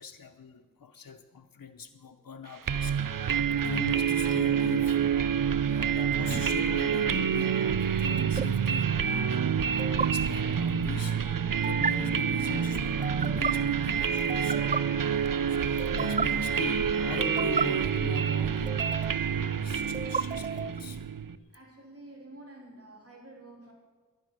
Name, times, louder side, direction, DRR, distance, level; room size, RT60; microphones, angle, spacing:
voice 1, 0.0-5.1 5.7-9.4 10.0-11.2 11.6-21.1, left 6 dB, 90° left, 5 dB, 0.9 m, -42 dB
sound 1, 2.7-21.4, right 7 dB, 75° right, 0.7 m, -27 dB
sound 2, 6.1-6.4 8.2-8.4 9.8-10.1 11.6-11.9 13.0-13.5 14.3-14.8 15.8-16.3 17.2-17.6 18.7-19.2 19.9-20.8, right 5 dB, 25° right, 0.4 m, -32 dB
voice 2, 21.5-23.7, right 2 dB, 45° right, -1 dB, 3.7 m, -49 dB
11.5 x 11.0 x 9.7 m, 1.3 s
wide cardioid pair, 50°, 33 cm